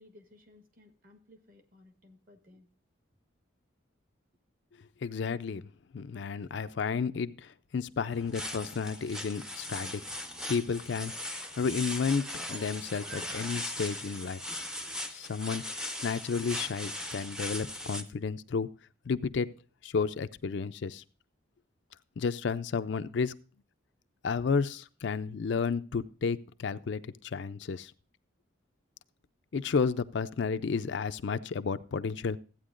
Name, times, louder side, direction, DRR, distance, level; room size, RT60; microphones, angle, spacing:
voice 1, 0.0-2.7, left 2 dB, 45° right, 6 dB, 1.3 m, -58 dB
voice 2, 5.0-5.6 5.9-10.0 10.5-14.4 15.1-18.7 19.1-19.5 19.8-21.0 22.2-23.3 24.2-27.9 29.5-32.4, left 5 dB, 65° left, 12 dB, 0.4 m, -32 dB
sound 1, 8.1-18.0, left 1 dB, 5° right, 0.5 m, -39 dB
14.5 x 8.9 x 2.5 m, 0.38 s
head